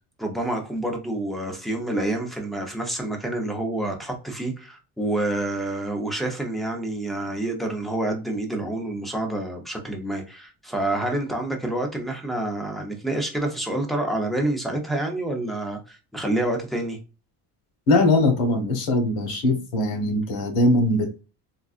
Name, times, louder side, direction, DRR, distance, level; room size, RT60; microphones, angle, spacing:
voice 1, 0.2-17.0, right 1 dB, ahead, 0.6 m, -28 dB
voice 2, 17.9-21.2, left 2 dB, 85° left, 1.2 m, -21 dB
3.7 x 2.3 x 2.4 m
cardioid pair, 140°, 35 cm